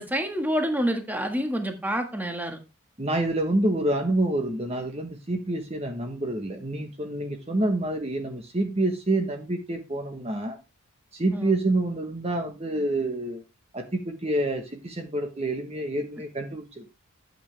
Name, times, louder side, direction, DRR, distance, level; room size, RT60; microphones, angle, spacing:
voice 1, 0.0-2.6 11.3-11.6, equal, 10° right, 5 dB, 1.6 m, -28 dB
voice 2, 3.0-10.6 11.1-13.4 13.7-16.9, right 1 dB, 25° right, 5 dB, 1.3 m, -27 dB
12.0 x 7.9 x 3.4 m, 0.26 s
head